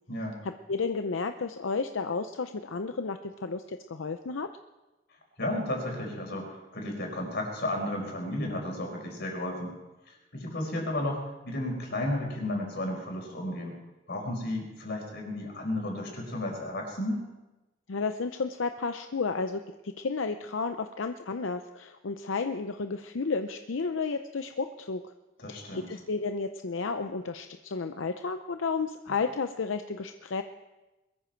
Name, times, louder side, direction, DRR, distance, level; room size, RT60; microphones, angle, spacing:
voice 1, 0.4-4.5 17.9-25.1 25.5-30.4, left 4 dB, 90° left, 8 dB, 0.6 m, -32 dB
voice 2, 5.4-9.7 10.3-13.8 14.1-17.2 25.4-25.9, left 1 dB, 60° left, 1 dB, 5.0 m, -33 dB
21.5 x 14.0 x 4.5 m, 1.1 s
head